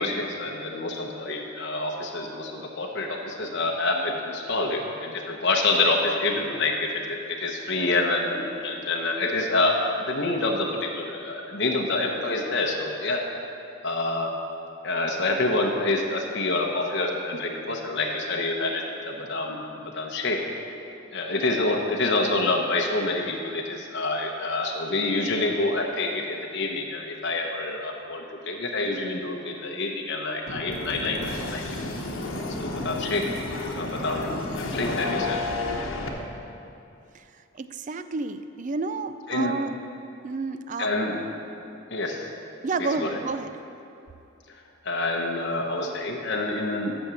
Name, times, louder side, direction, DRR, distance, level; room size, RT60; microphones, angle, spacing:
voice 1, 0.0-13.2 13.8-14.3 14.8-19.6 20.0-20.4 21.1-31.6 32.6-33.2 33.8-35.4 39.3-39.6 40.8-41.2 41.9-42.2 42.8-43.1 44.8-46.9, left 2 dB, 60° left, 0 dB, 0.9 m, -27 dB
sound 1, 30.5-36.1, left 2 dB, 85° left, 1.1 m, -31 dB
voice 2, 37.6-39.8 40.2-40.9 42.6-43.5, right 3 dB, 40° right, 11 dB, 0.4 m, -30 dB
8.7 x 6.4 x 6.9 m, 2.6 s
head